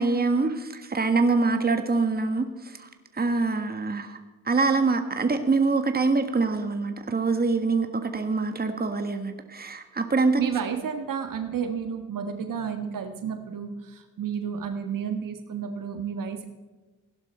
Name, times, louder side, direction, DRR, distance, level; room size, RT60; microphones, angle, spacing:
voice 1, 0.0-2.9 3.1-4.2 4.4-10.4, right 3 dB, 25° right, 7 dB, 1.6 m, -25 dB
voice 2, 10.4-16.4, right 7 dB, 60° right, 7 dB, 1.7 m, -31 dB
16.5 x 11.5 x 4.4 m, 1.2 s
supercardioid pair, 55°, 38 cm